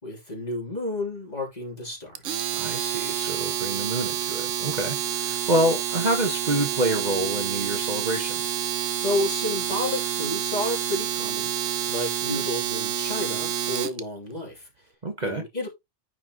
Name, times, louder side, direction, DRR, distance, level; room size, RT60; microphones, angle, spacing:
voice 1, 0.0-2.2 9.0-11.5 11.9-14.7 15.2-15.7, left 1 dB, 35° left, 3.3 m, -31 dB
Domestic sounds home sounds, 2.1-14.0, right 10 dB, 80° right, 1.1 m, -28 dB
voice 2, 2.6-8.6 15.0-15.4, right 1 dB, 35° right, 1.4 m, -27 dB
9.6 x 5.9 x 3.0 m
omnidirectional pair, 1.3 m